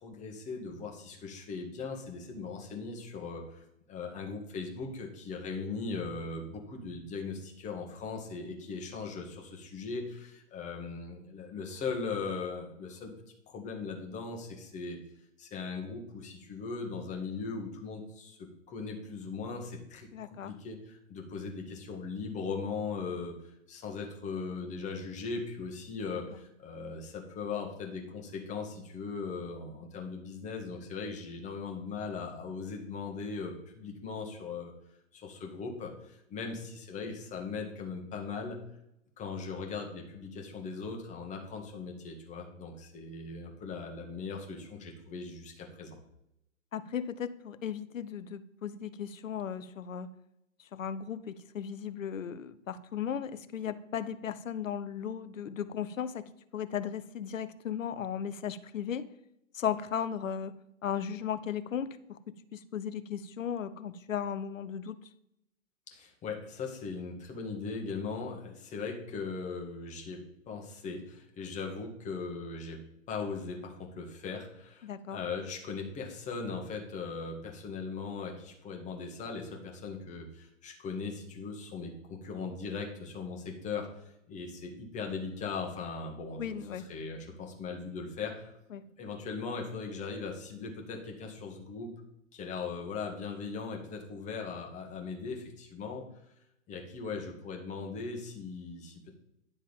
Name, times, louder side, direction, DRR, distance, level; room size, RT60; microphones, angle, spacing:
voice 1, 0.0-13.1 13.5-15.0 15.4-20.1 20.4-23.3 23.7-34.7 35.1-38.6 39.2-46.0 65.9-88.6 89.0-91.9 92.3-96.1 96.7-99.1, left 4 dB, 20° left, 1 dB, 1.4 m, -39 dB
voice 2, 20.1-20.5 36.5-36.6 46.7-50.1 50.6-59.1 59.5-60.5 60.8-62.2 62.5-65.0 74.8-75.2 86.4-86.9 88.7-88.8, left 8 dB, 70° left, 13 dB, 0.8 m, -36 dB
10.0 x 3.7 x 7.1 m, 0.82 s
figure-of-eight pair, 120°, 40 cm